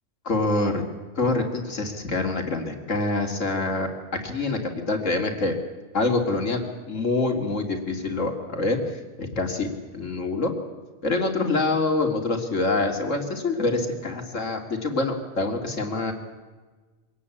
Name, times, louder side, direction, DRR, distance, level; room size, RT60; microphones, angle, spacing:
voice 1, 0.2-0.8 1.2-5.5 5.9-8.8 9.2-9.7 9.9-10.5 11.0-16.1, left 3 dB, 65° left, 4 dB, 3.0 m, -25 dB
24.5 x 18.0 x 8.6 m, 1.3 s
omnidirectional pair, 1.4 m